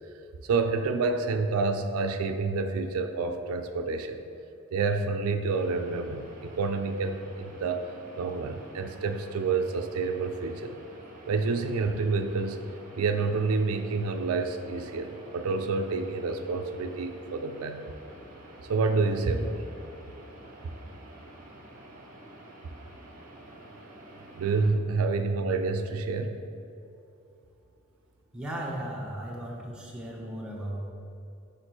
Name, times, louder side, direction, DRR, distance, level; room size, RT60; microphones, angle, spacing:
voice 1, 0.4-4.2 4.7-7.9 8.2-10.7 11.3-12.6 13.0-17.9 18.7-19.6 24.3-26.4, right 4 dB, 85° right, 7 dB, 0.4 m, -28 dB
sound 1, 5.5-24.7, right 1 dB, 40° right, 0.9 m, -49 dB
voice 2, 28.3-30.9, right 1 dB, 5° right, -4 dB, 0.9 m, -36 dB
6.5 x 5.0 x 3.1 m, 2.8 s
head